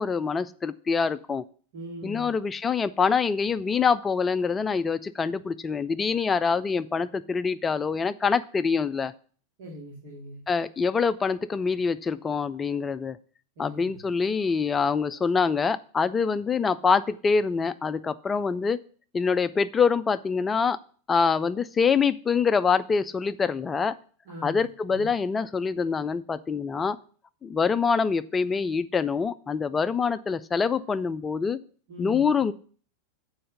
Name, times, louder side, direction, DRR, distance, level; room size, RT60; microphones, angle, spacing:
voice 1, 0.0-1.4 2.0-9.1 10.5-13.2 13.6-18.8 19.1-20.8 21.1-23.9 24.4-27.0 27.4-31.6 32.0-32.5, left 5 dB, 15° left, 14 dB, 0.5 m, -25 dB
voice 2, 1.7-2.3 9.6-10.4 13.6-13.8 24.3-24.6 24.9-25.1 31.9-32.2, left 1 dB, 50° right, -4 dB, 2.5 m, -40 dB
7.7 x 4.8 x 6.6 m, 0.43 s
figure-of-eight pair, 90°, 0 cm